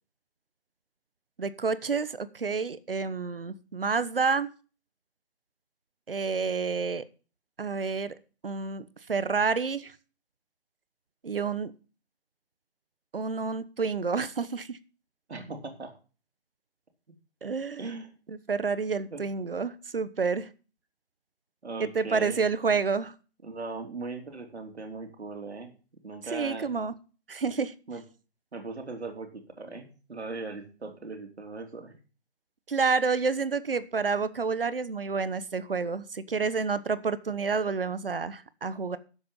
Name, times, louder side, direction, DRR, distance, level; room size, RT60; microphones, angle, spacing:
voice 1, 1.4-4.5 6.1-7.0 7.6-8.1 8.4-9.9 11.2-11.7 13.1-14.8 17.4-17.8 18.3-20.5 21.8-23.1 26.3-26.9 27.3-27.7 32.7-39.0, right 5 dB, 60° right, 15 dB, 1.1 m, -29 dB
voice 2, 15.3-15.9 17.8-18.1 19.1-19.2 21.6-22.4 23.4-25.7 26.0-26.7 27.9-28.0 28.5-31.9, right 3 dB, 80° right, 5 dB, 3.2 m, -39 dB
12.5 x 7.8 x 5.4 m, 0.36 s
hypercardioid pair, 175°, 32 cm